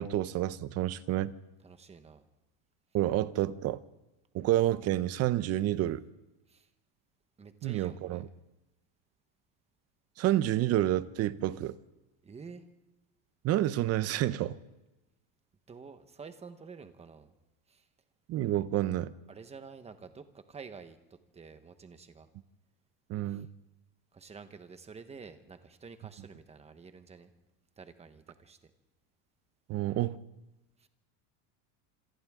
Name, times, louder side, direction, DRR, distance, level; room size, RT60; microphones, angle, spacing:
voice 1, 0.0-1.3 2.9-3.8 4.3-6.0 7.6-8.3 10.2-11.8 13.4-14.6 18.3-19.1 23.1-23.5 29.7-30.2, right 13 dB, 35° right, 0.7 m, -29 dB
voice 2, 1.6-2.2 6.5-6.7 7.4-8.3 12.2-12.7 15.7-17.3 17.7-17.9 19.3-22.3 23.3-23.4 24.1-27.3 27.8-28.7 30.8-30.9, right 5 dB, 15° right, 1.1 m, -49 dB
27.0 x 26.0 x 3.7 m
cardioid pair, 155°, 45 cm